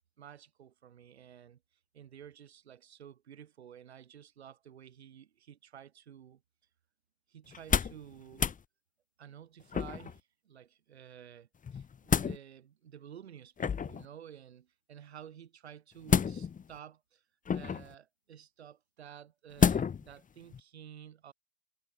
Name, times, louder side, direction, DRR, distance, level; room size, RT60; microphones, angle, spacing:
voice 1, 0.2-1.6 1.9-6.4 7.3-8.5 9.2-17.2 17.5-21.3, right 9 dB, 90° right, 6.4 m, -52 dB
sound 1, 7.5-8.0 8.3-8.6 9.7-10.2 11.6-12.4 13.6-14.1 16.1-16.7 17.5-17.9 19.6-20.1 20.5-20.6, left 7 dB, 25° left, 1.2 m, -29 dB
hypercardioid pair, 75°, 31 cm